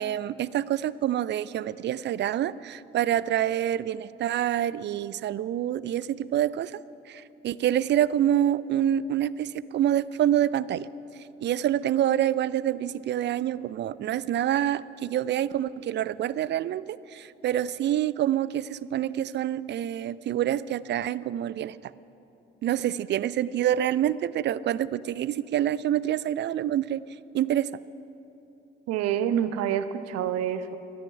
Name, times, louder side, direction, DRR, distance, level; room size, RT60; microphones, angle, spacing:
voice 1, 0.0-6.8 7.1-10.9 11.4-21.8 22.6-27.0 27.3-27.8, right 11 dB, 40° right, 19 dB, 0.4 m, -27 dB
voice 2, 28.9-30.8, right 9 dB, 60° right, 12 dB, 0.8 m, -27 dB
13.5 x 13.0 x 5.5 m, 2.8 s
figure-of-eight pair, 45°, 30 cm